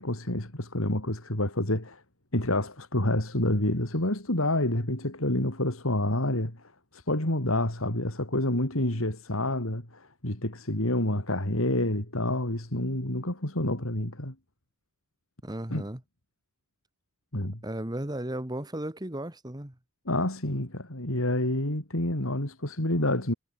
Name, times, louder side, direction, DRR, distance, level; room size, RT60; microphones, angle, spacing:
voice 1, 0.0-2.0 2.3-6.6 6.9-14.3 15.7-15.8 17.3-17.6 20.1-23.3, left 1 dB, 80° left, 4.4 m, -28 dB
voice 2, 15.4-16.0 17.6-19.7, right 1 dB, 20° right, 1.6 m, -35 dB
head